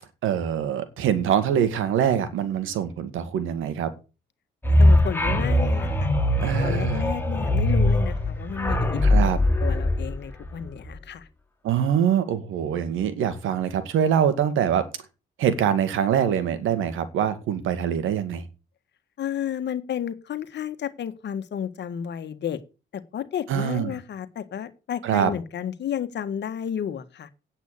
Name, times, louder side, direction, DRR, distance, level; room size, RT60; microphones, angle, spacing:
voice 1, 0.2-3.9 6.4-7.0 9.0-9.4 11.6-14.8 15.4-18.4 23.5-24.0 25.0-25.3, right 9 dB, 85° right, 2.0 m, -24 dB
sound 1, 4.6-10.9, left 1 dB, 10° left, 2.8 m, -21 dB
voice 2, 4.8-6.1 6.6-9.3 9.6-11.2 19.2-22.6 22.9-27.3, left 9 dB, 60° left, 1.6 m, -32 dB
9.3 x 8.1 x 8.4 m
cardioid pair, 90°, 20 cm